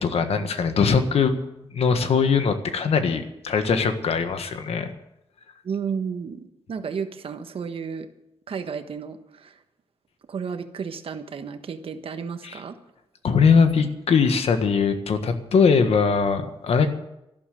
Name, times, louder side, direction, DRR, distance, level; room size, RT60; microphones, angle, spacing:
voice 1, 0.0-1.4 1.7-4.9 12.4-12.6 13.2-16.9, left 5 dB, 75° left, 8 dB, 1.6 m, -21 dB
voice 2, 5.6-8.1 8.5-9.6 10.3-12.7, right 6 dB, 65° right, 8 dB, 1.3 m, -32 dB
13.0 x 12.0 x 7.8 m, 0.86 s
wide cardioid pair, 135°, 10 cm